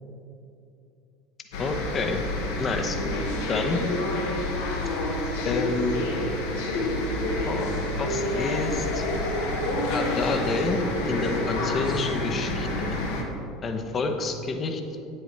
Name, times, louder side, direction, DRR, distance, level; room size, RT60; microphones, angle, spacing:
sound 1, 1.5-13.2, left 1 dB, 65° left, 1.1 m, -28 dB
voice 1, 1.6-2.2 2.6-3.0 3.5-3.8 5.4-6.1 7.5-9.0 9.9-13.0 13.6-14.8, left 3 dB, 30° left, 5 dB, 0.8 m, -29 dB
9.2 x 7.8 x 3.2 m, 2.6 s
figure-of-eight pair, 70°, 0 cm